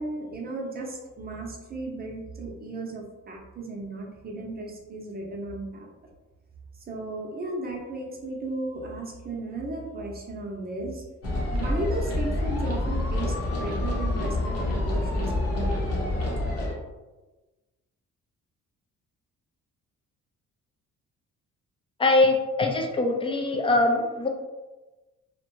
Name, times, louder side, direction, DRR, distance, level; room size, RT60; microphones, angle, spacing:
voice 1, 0.0-5.9 6.9-11.0 11.5-16.4, right 2 dB, 30° right, 0 dB, 0.7 m, -35 dB
sound 1, 11.2-16.7, left 1 dB, 55° left, 0.9 m, -27 dB
voice 2, 22.0-24.3, left 2 dB, 20° left, 2 dB, 0.4 m, -22 dB
2.5 x 2.2 x 3.0 m, 1.1 s
cardioid pair, 90°, 30 cm